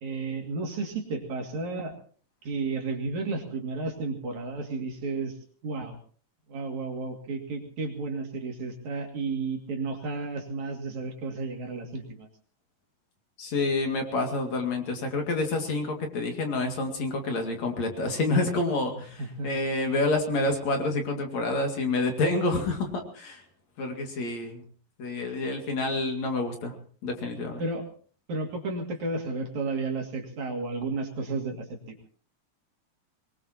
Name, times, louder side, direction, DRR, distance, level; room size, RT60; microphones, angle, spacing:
voice 1, 0.0-1.9 2.4-5.4 5.6-6.0 6.5-12.3 19.2-19.5 27.6-27.9 28.3-32.0, right 3 dB, 60° right, 2 dB, 3.7 m, -32 dB
voice 2, 13.4-23.4 23.8-24.6 25.0-26.7 27.0-27.6, left 2 dB, 55° left, 3 dB, 3.3 m, -28 dB
24.0 x 20.5 x 2.9 m, 0.42 s
omnidirectional pair, 3.9 m